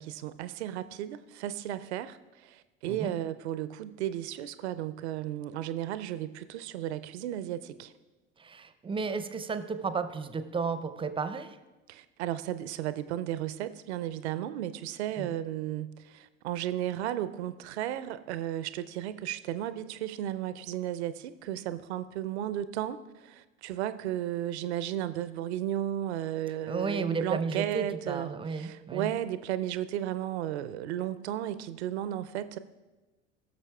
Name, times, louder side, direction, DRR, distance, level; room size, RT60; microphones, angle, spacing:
voice 1, 0.0-7.9 11.9-32.6, right 12 dB, 70° right, 14 dB, 0.5 m, -34 dB
voice 2, 8.4-11.6 15.2-15.3 26.7-29.1, right 5 dB, 15° right, 11 dB, 0.5 m, -33 dB
17.0 x 6.6 x 2.3 m, 1.2 s
figure-of-eight pair, 65°, 34 cm